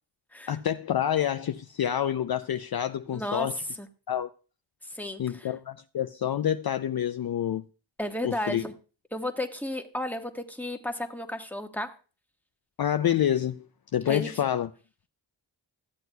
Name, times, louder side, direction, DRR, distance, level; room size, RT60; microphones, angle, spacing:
voice 1, 0.5-3.5 4.1-4.3 5.2-7.6 8.2-8.6 12.8-13.7 13.9-14.7, left 10 dB, 55° left, 0.5 m, -27 dB
voice 2, 3.1-3.5 3.8-3.9 4.8-5.5 8.0-8.7 9.1-11.9 14.1-14.5, left 1 dB, 5° left, 1.2 m, -33 dB
13.5 x 7.7 x 2.3 m
cardioid pair, 40°, 47 cm